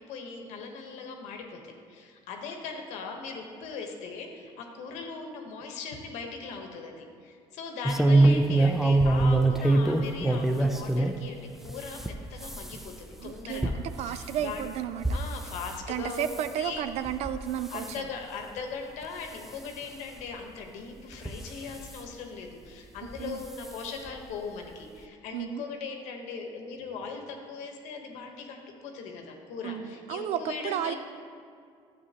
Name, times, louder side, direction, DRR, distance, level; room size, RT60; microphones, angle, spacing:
voice 1, 0.1-13.7 14.0-14.7 15.1-16.8 17.7-31.0, left 5 dB, 85° left, 3 dB, 1.1 m, -39 dB
sound 1, 7.9-11.2 11.6-15.8 16.1-16.5 17.1-17.4 17.7-18.0 18.6-18.7 19.0-19.1 20.3-20.4 21.1-22.0 23.1-23.3 23.6-23.7 24.1-24.2, right 2 dB, 5° right, 0.4 m, -25 dB
voice 2, 13.2-15.1 15.9-18.1 23.2-23.4 25.3-25.6 29.6-30.9, right 10 dB, 70° right, 12 dB, 0.4 m, -33 dB
11.0 x 7.6 x 2.9 m, 2.3 s
cardioid pair, 125°, 12 cm